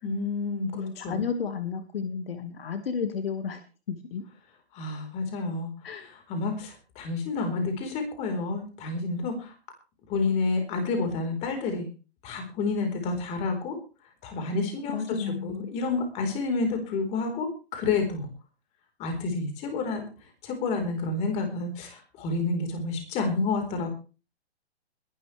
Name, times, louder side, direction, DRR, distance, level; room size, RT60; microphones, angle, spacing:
voice 1, 0.0-1.2 4.7-5.7 6.0-9.5 10.1-11.9 12.2-13.8 14.2-18.3 19.0-20.0 20.4-23.9, left 3 dB, 20° left, 5 dB, 4.2 m, -29 dB
voice 2, 0.7-3.6 3.9-4.2 5.8-6.1 14.9-15.7, left 6 dB, 60° left, 8 dB, 1.9 m, -32 dB
21.5 x 12.0 x 3.3 m, 0.34 s
hypercardioid pair, 155°, 33 cm